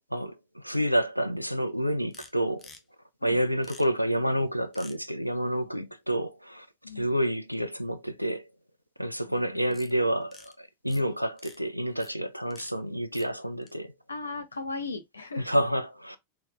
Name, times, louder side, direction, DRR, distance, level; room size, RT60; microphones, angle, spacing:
voice 1, 0.1-2.7 3.2-6.7 7.0-8.4 9.0-13.9 15.4-16.2, equal, 90° right, 0.4 m, -29 dB
sound 1, 2.1-2.3 2.6-2.8 3.6-3.8 4.7-4.9 9.7-9.9 10.2-10.5 10.9-11.0 11.4-11.6 12.0-12.1 12.5-12.7 13.1-13.3 13.6-13.7, left 4 dB, 15° left, 0.7 m, -48 dB
voice 2, 5.5-5.9 6.8-7.2 9.2-9.8 14.1-15.5, left 3 dB, 80° left, 0.9 m, -38 dB
3.9 x 3.1 x 2.2 m
figure-of-eight pair, 90°, 0 cm